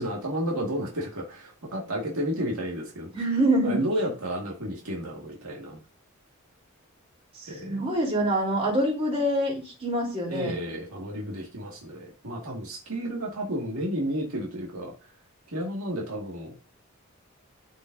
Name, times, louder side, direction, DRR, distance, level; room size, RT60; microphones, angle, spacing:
voice 1, 0.0-3.1 3.6-5.8 7.5-7.8 10.3-14.9 15.5-16.5, equal, 85° right, -2 dB, 2.0 m, -32 dB
voice 2, 3.1-3.8 7.4-10.6, right 1 dB, 30° right, -2 dB, 3.6 m, -25 dB
12.5 x 5.4 x 2.7 m, 0.36 s
head